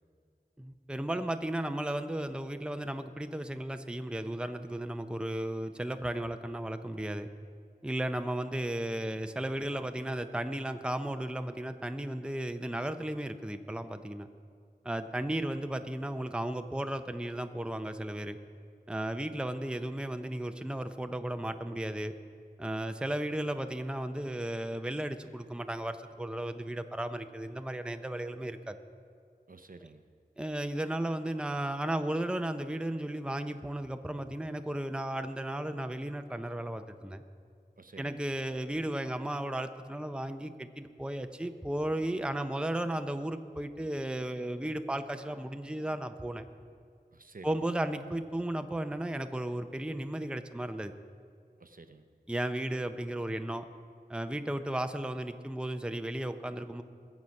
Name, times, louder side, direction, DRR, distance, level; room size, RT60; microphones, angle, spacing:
voice 1, 0.6-7.3 7.8-14.3 14.8-18.4 18.9-22.1 22.6-28.8 30.4-37.2 38.0-46.5 47.4-50.9 52.3-53.7 54.1-56.8, right 1 dB, 5° right, 8 dB, 0.6 m, -35 dB
voice 2, 29.5-30.0 37.8-38.2 47.1-47.7 51.6-52.1, right 3 dB, 60° right, 8 dB, 0.7 m, -51 dB
21.0 x 7.3 x 5.3 m, 2.2 s
wide cardioid pair, 50°, 17 cm